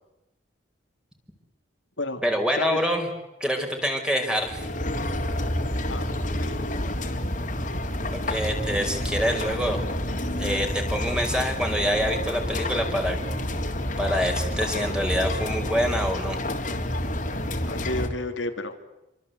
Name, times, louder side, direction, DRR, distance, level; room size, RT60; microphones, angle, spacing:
voice 1, 2.2-3.1 3.4-4.6 8.3-9.8 10.4-13.2 14.0-16.4, equal, 5° right, 3 dB, 5.3 m, -26 dB
sound 1, 4.4-18.1, left 1 dB, 40° left, 3.6 m, -29 dB
voice 2, 5.9-6.5 17.3-18.8, left 2 dB, 80° left, 5 dB, 3.1 m, -32 dB
28.5 x 25.0 x 8.3 m, 0.95 s
head